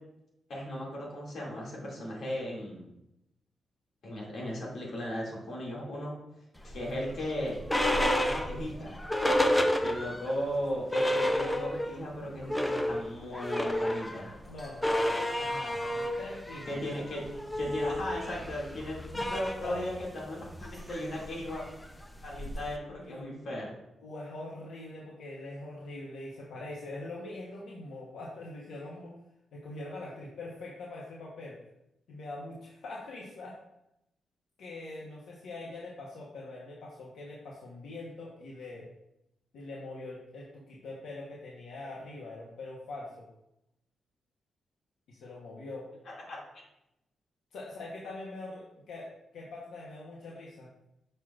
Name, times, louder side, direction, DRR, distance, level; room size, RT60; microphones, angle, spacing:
voice 1, 0.5-2.9 4.0-6.1 6.6-9.0 9.8-14.4 16.7-17.2 17.5-21.6 22.2-23.7 46.0-46.4, left 1 dB, 60° left, -4 dB, 2.3 m, -36 dB
sound 1, 6.7-10.3 10.6-10.7 10.9-12.0 12.3-22.8, left 1 dB, 10° left, 0.5 m, -31 dB
voice 2, 14.4-15.1 15.4-16.8 19.6-19.8 23.0-23.5 24.0-29.1 29.5-31.6 32.1-33.6 34.6-38.9 39.5-43.3 45.1-45.9 47.5-50.7, left 2 dB, 85° left, -4 dB, 1.0 m, -43 dB
6.7 x 6.1 x 2.4 m, 0.85 s
wide cardioid pair, 135°, 0 cm